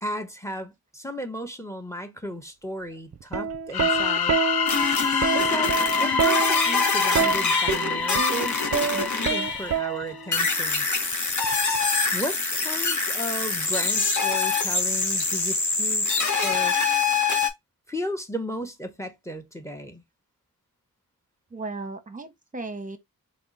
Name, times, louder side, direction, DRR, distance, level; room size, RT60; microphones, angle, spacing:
voice 1, 0.0-4.4 5.3-10.9 12.1-16.2 16.4-16.7 17.9-20.0, equal, 10° left, 0.8 m, -35 dB
Plucked string instrument, 3.1-10.4 11.4-11.8, right 7 dB, 45° right, 0.4 m, -27 dB
sound 1, 3.7-10.4, left 6 dB, 85° left, 0.5 m, -26 dB
sound 2, 4.7-9.8 10.3-17.5, left 4 dB, 55° left, 0.8 m, -25 dB
voice 2, 21.5-23.0, right 3 dB, 20° right, 0.8 m, -35 dB
3.6 x 2.0 x 3.8 m
wide cardioid pair, 45°, 36 cm